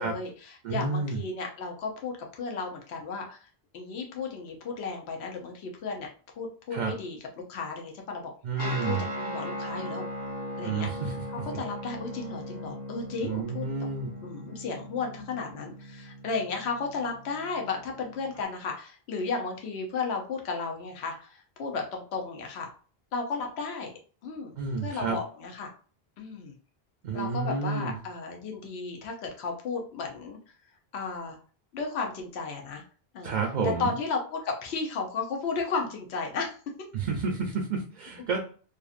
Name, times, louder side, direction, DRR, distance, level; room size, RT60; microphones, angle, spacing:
voice 1, 0.0-3.4 3.7-6.1 6.4-7.2 7.5-8.3 8.6-10.0 10.6-10.9 11.3-13.7 14.2-22.7 23.1-23.9 24.2-24.6 24.8-25.7 26.2-26.6 27.1-30.4 30.9-31.4 31.7-32.8 33.1-33.3 33.6-36.6, left 4 dB, 80° left, 1 dB, 0.9 m, -34 dB
voice 2, 0.6-1.2 6.7-6.9 8.4-9.0 10.6-11.1 13.2-14.1 24.6-25.2 27.0-28.0 33.2-33.9 36.9-38.4, right 4 dB, 55° right, 1 dB, 0.6 m, -30 dB
Guitar, 8.6-18.4, equal, 20° left, 0.9 m, -39 dB
2.6 x 2.5 x 2.4 m, 0.41 s
omnidirectional pair, 1.1 m